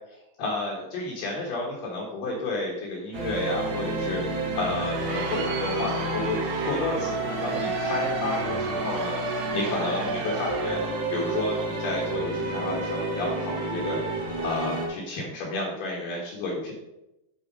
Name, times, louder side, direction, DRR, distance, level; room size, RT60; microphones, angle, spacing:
voice 1, 0.4-4.2 4.5-6.4 6.6-10.8 11.1-14.0 14.4-16.7, left 3 dB, 60° left, -4 dB, 2.9 m, -31 dB
sound 1, 3.1-14.9, right 2 dB, 45° right, 1.7 m, -30 dB
Crowd, 4.6-11.1, right 4 dB, 70° right, 1.9 m, -35 dB
10.0 x 5.1 x 5.0 m, 0.92 s
omnidirectional pair, 5.0 m